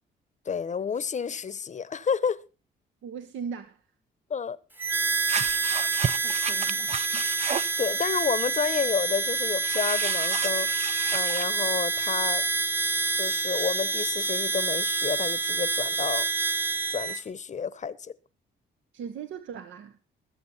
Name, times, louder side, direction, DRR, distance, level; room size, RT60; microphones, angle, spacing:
voice 1, 0.5-2.4 4.3-4.6 7.8-10.7 11.1-12.4 13.1-16.3 16.9-18.1, left 6 dB, 35° left, 0.9 m, -30 dB
voice 2, 3.0-3.8 6.2-7.3 18.9-20.0, right 7 dB, 75° right, 1.0 m, -39 dB
Harmonica, 4.8-17.2, right 3 dB, 10° right, 1.0 m, -27 dB
sound 1, 5.3-7.8 9.6-11.5, right 7 dB, 35° right, 0.5 m, -32 dB
21.5 x 7.3 x 4.1 m
cardioid pair, 90°, 20 cm